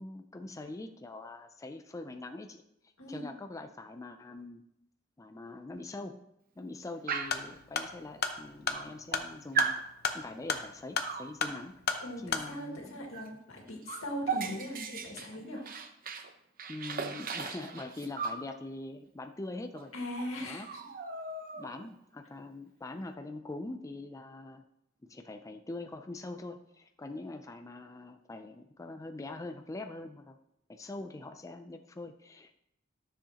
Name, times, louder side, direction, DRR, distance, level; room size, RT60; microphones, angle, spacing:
voice 1, 0.0-2.6 3.1-4.6 5.2-6.2 6.6-9.9 10.1-11.8 12.2-13.1 16.7-19.9 20.4-20.7 21.5-24.6 25.0-30.4 30.7-32.6, left 2 dB, 15° left, 6 dB, 0.4 m, -43 dB
voice 2, 3.0-3.3 12.0-15.6 19.9-20.8, equal, 90° left, 0 dB, 2.0 m, -40 dB
Dog, 7.1-7.5 8.3-8.4 8.7-9.2 9.5-9.9 11.0-11.3 13.1-13.3 13.6-16.3 16.6-18.4 19.7-19.8 20.1-20.3 20.6-21.9, right 5 dB, 45° right, 0.7 m, -36 dB
sound 1, 7.2-12.5, left 5 dB, 50° left, 0.8 m, -35 dB
12.5 x 7.0 x 2.9 m, 0.80 s
head